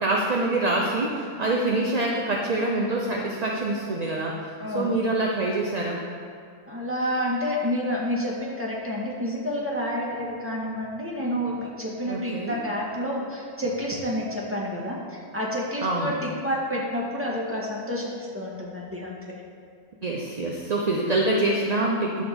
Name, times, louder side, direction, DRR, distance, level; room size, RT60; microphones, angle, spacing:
voice 1, 0.0-4.3 4.7-6.0 12.1-12.6 15.8-16.1 20.0-22.2, right 2 dB, 35° right, -2 dB, 0.7 m, -25 dB
voice 2, 4.6-5.0 6.7-19.1, equal, 10° right, -4 dB, 1.8 m, -29 dB
12.5 x 4.3 x 7.0 m, 2.3 s
omnidirectional pair, 1.5 m